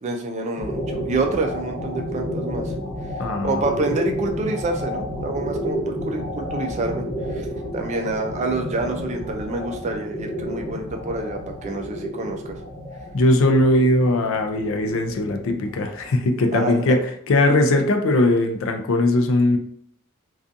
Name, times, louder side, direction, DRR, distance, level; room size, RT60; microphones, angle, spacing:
voice 1, 0.0-2.7 3.4-7.5 7.7-12.6 16.5-16.9, right 2 dB, 30° right, 3 dB, 0.3 m, -27 dB
sound 1, 0.6-16.7, equal, 15° right, 0.9 m, -31 dB
voice 2, 3.2-3.6 13.1-17.0 17.3-19.6, left 1 dB, 65° left, 5 dB, 0.4 m, -19 dB
2.5 x 2.3 x 2.5 m, 0.63 s
head